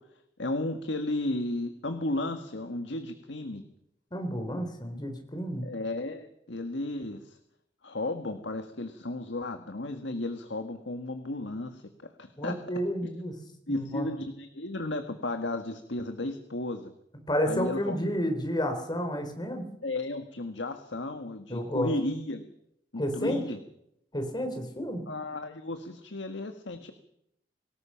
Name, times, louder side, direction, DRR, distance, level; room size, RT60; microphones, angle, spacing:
voice 1, 0.4-3.6 5.6-7.4 7.8-11.8 12.2-12.6 13.7-16.9 17.5-18.0 19.8-22.5 22.9-23.6 25.1-26.9, left 2 dB, 75° left, 7 dB, 1.7 m, -34 dB
voice 2, 4.1-5.7 12.4-13.3 13.7-14.1 17.3-19.7 21.5-21.9 23.0-23.4 24.1-25.0, equal, 25° left, 5 dB, 4.1 m, -31 dB
25.0 x 18.5 x 5.8 m, 0.76 s
head